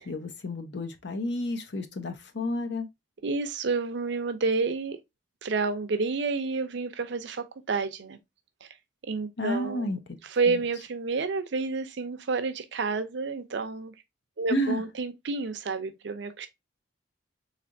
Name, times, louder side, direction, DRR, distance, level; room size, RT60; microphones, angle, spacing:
voice 1, 0.1-2.9 9.4-10.0 10.5-10.6 14.5-14.8, left 1 dB, 60° left, 0.7 m, -31 dB
voice 2, 3.2-5.0 5.4-8.2 9.1-9.9 10.2-13.9 14.4-16.5, right 4 dB, 65° right, 0.6 m, -29 dB
3.6 x 3.3 x 2.5 m
head